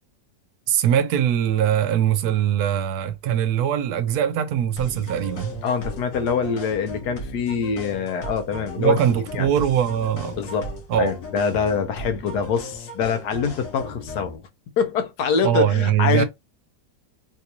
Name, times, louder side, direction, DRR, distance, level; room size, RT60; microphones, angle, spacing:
voice 1, 0.7-5.5 8.8-10.4 10.9-11.1 15.4-16.2, right 9 dB, 75° right, 1.1 m, -21 dB
sound 1, 4.8-14.4, left 1 dB, 60° left, 1.2 m, -37 dB
voice 2, 5.6-9.0 9.3-9.5 10.4-14.5 14.8-16.2, left 6 dB, 85° left, 1.4 m, -25 dB
3.5 x 2.6 x 2.8 m
omnidirectional pair, 1.7 m